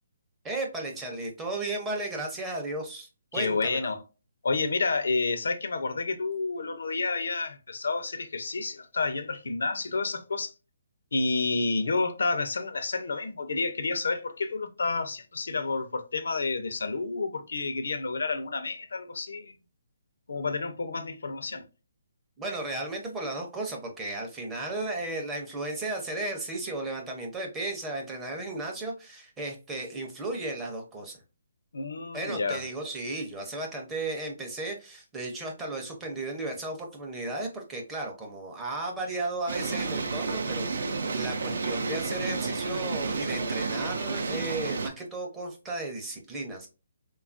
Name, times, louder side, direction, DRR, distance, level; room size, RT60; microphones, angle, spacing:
voice 1, 0.4-3.9 22.4-31.2 32.1-46.7, right 2 dB, 10° right, 0.5 m, -35 dB
voice 2, 3.3-4.0 4.4-10.5 11.1-19.6 20.3-21.6 31.7-32.6, left 3 dB, 80° left, 0.5 m, -30 dB
sound 1, 39.5-44.9, right 4 dB, 70° right, 0.5 m, -31 dB
3.4 x 2.3 x 2.4 m
hypercardioid pair, 165°, 0 cm